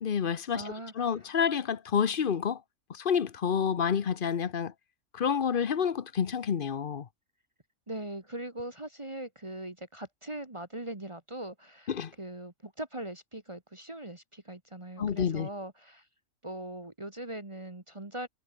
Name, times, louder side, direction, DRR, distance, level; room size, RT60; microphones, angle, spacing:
voice 1, 0.0-2.6 2.9-4.7 5.1-7.1 11.9-12.1 15.0-15.5, left 7 dB, 45° left, 0.9 m, -29 dB
voice 2, 0.5-1.1 7.9-11.9 12.2-16.0 16.4-18.3, right 1 dB, 25° right, 1.7 m, -40 dB
omnidirectional pair, 1.4 m